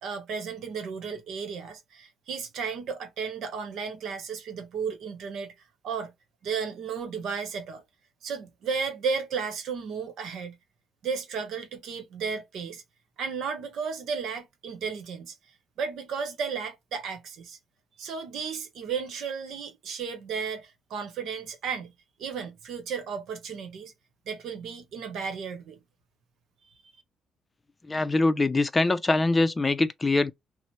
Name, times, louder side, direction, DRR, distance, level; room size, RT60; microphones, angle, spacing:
voice 1, 0.0-5.5 5.8-6.1 6.4-7.8 8.2-10.6 11.0-12.8 13.2-15.4 15.8-17.6 18.0-21.9 22.2-23.9 24.3-25.8, right 6 dB, 75° right, 1.0 m, -34 dB
voice 2, 27.9-30.3, left 2 dB, 25° left, 0.5 m, -23 dB
3.0 x 2.1 x 4.0 m
cardioid pair, 90°, 0 cm